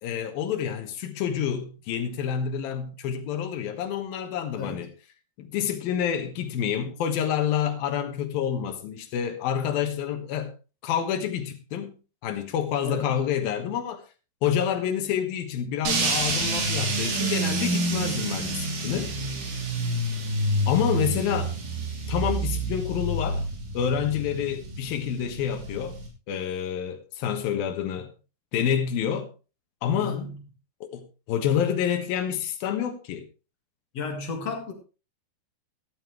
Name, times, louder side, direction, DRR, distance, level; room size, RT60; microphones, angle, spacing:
voice 1, 0.0-4.9 5.4-10.5 10.8-12.0 12.2-14.0 14.4-19.1 20.7-21.5 22.1-23.5 23.7-26.0 26.3-28.1 28.5-29.3 29.8-30.2 30.8-33.2, left 9 dB, 70° left, 2.5 m, -28 dB
voice 2, 4.5-4.8 12.8-13.1 30.0-30.4 33.9-34.7, left 4 dB, 50° left, 2.2 m, -33 dB
sound 1, 15.9-26.1, right 2 dB, 75° right, 5.4 m, -28 dB
13.5 x 13.0 x 3.1 m
omnidirectional pair, 5.4 m